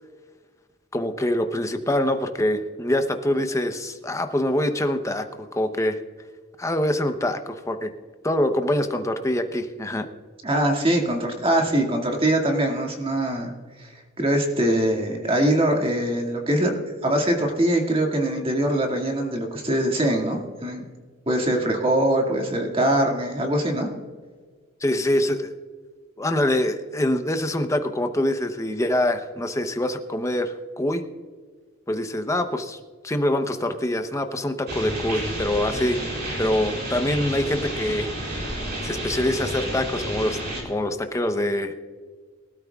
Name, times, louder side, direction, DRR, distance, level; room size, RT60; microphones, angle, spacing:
voice 1, 0.9-6.0 6.6-7.9 8.2-10.1 24.8-25.5 26.2-31.0 31.9-32.8 33.0-36.0 36.4-38.6 38.8-40.4 40.6-41.7, left 1 dB, 15° left, 7 dB, 0.8 m, -25 dB
voice 2, 10.4-13.5 13.8-13.9 14.2-20.8 21.3-23.9, right 1 dB, 30° right, 2 dB, 2.1 m, -23 dB
sound 1, 34.7-40.6, right 1 dB, 55° right, 4.6 m, -30 dB
23.0 x 13.0 x 2.4 m, 1.5 s
head